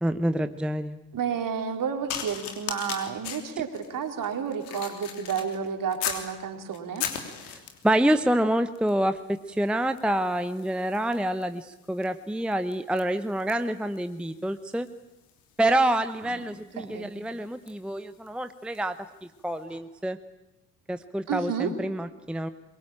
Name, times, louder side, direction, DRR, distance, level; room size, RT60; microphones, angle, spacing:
voice 1, 0.0-1.0 7.5-14.9 15.6-19.0 19.4-20.2 20.9-22.5, right 1 dB, ahead, 10 dB, 0.9 m, -27 dB
voice 2, 1.1-7.1 16.2-16.4 16.8-17.1 21.3-21.7, right 7 dB, 45° right, 5 dB, 3.8 m, -31 dB
sound 1, 2.1-6.3 6.7-8.0 8.8-9.0 9.3-19.0 19.7-19.8, left 8 dB, 70° left, 3.2 m, -39 dB
23.5 x 23.0 x 8.9 m, 1.0 s
figure-of-eight pair, 55°, 47 cm